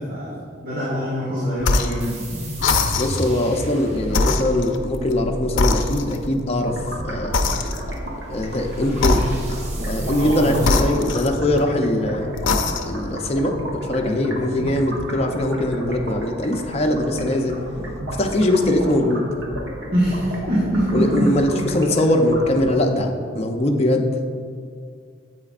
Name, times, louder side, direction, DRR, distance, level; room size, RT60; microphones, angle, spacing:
voice 1, 0.0-2.1 10.2-10.8 11.1-11.2 14.0-14.2 19.9-21.3, equal, 50° right, -8 dB, 1.7 m, -24 dB
sound 1, 1.6-2.0 2.6-3.4 4.1-5.2 5.6-6.4 7.3-8.1 9.0-9.7 10.6-11.7 12.3-13.1, left 3 dB, 75° left, 0.5 m, -22 dB
sound 2, 2.0-10.9, right 1 dB, 35° right, 1.0 m, -33 dB
voice 2, 3.0-7.4 8.3-9.2 9.8-12.4 12.9-17.6 18.2-19.3 20.9-24.1, left 1 dB, 35° left, 2 dB, 0.6 m, -21 dB
sound 3, 6.6-23.0, right 1 dB, 70° right, 1.1 m, -33 dB
9.4 x 8.0 x 2.5 m, 2.2 s
head